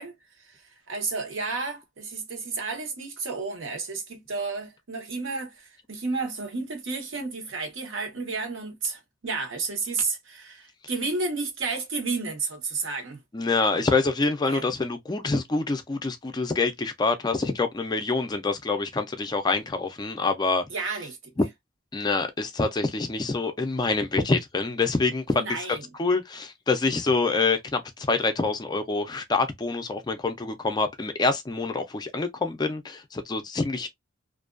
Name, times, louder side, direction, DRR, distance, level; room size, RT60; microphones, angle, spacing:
voice 1, 0.0-13.2 14.5-14.7 20.7-21.3 25.3-25.9, right 4 dB, 80° right, 0.9 m, -32 dB
voice 2, 13.3-20.6 21.9-33.9, left 3 dB, 20° left, 0.3 m, -26 dB
2.5 x 2.2 x 2.4 m
head